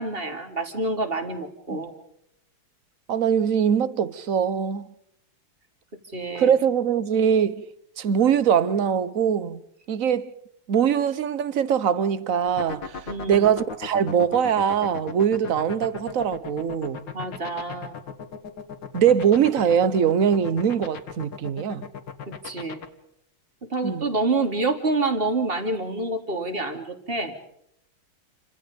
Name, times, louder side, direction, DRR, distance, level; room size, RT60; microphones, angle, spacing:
voice 1, 0.0-1.9 6.1-6.5 13.1-13.5 17.1-18.0 22.3-22.8 23.7-27.3, right 2 dB, 25° right, 3.3 m, -27 dB
voice 2, 3.1-4.9 6.3-7.6 8.0-9.6 9.9-10.3 10.7-13.0 13.3-17.1 18.9-21.8 23.8-24.0, right 8 dB, 50° right, 1.2 m, -22 dB
sound 1, 12.5-22.9, left 6 dB, 60° left, 2.5 m, -35 dB
29.5 x 26.0 x 5.3 m
omnidirectional pair, 2.4 m